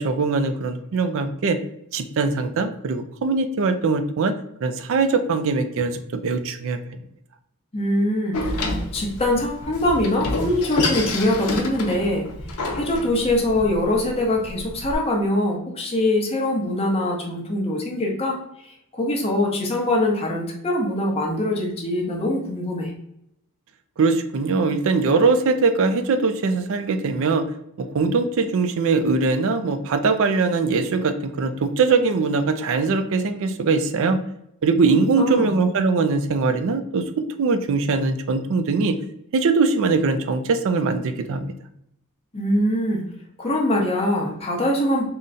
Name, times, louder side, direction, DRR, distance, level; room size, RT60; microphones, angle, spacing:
voice 1, 0.0-1.6 1.9-4.3 4.6-6.8 24.0-27.5 27.8-34.2 34.6-39.0 39.3-41.5, right 4 dB, 60° right, 9 dB, 0.4 m, -21 dB
voice 2, 7.7-12.3 12.7-18.4 18.6-22.9 35.1-35.6 42.3-43.0 43.4-45.1, left 1 dB, 25° left, 0 dB, 0.8 m, -23 dB
Door, 8.3-14.9, left 2 dB, 85° left, 0.7 m, -28 dB
3.8 x 2.2 x 3.8 m, 0.76 s
head